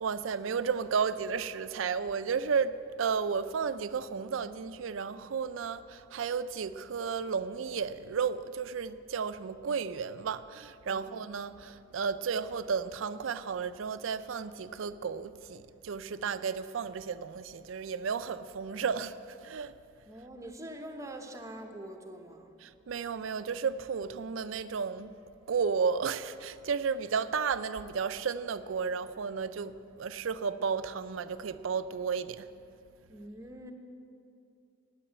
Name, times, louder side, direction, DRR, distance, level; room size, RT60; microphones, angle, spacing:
voice 1, 0.0-19.7 22.6-25.1 25.5-32.5, right 6 dB, 80° right, 0.5 m, -33 dB
voice 2, 20.1-22.5 33.1-33.7, right 1 dB, 15° right, 0.9 m, -44 dB
10.0 x 9.0 x 8.6 m
head